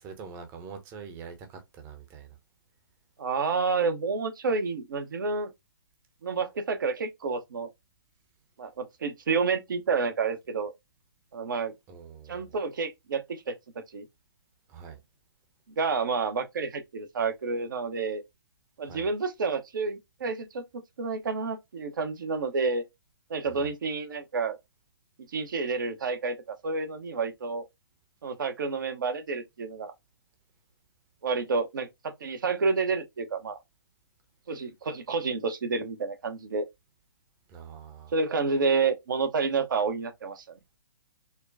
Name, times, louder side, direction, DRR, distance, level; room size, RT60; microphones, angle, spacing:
voice 1, 0.0-2.4 11.9-12.5 14.7-15.0 18.8-19.1 23.4-23.7 37.5-38.1, right 6 dB, 25° right, 0.8 m, -44 dB
voice 2, 3.2-5.5 6.2-7.7 8.6-10.7 11.3-11.7 12.3-13.5 13.9-14.0 15.8-18.2 18.8-20.6 21.0-22.8 23.3-24.6 25.3-26.4 26.6-27.6 28.2-29.9 31.2-33.6 34.5-36.7 38.1-40.5, right 4 dB, 60° right, 0.9 m, -29 dB
4.3 x 2.2 x 2.7 m
figure-of-eight pair, 130°, 12 cm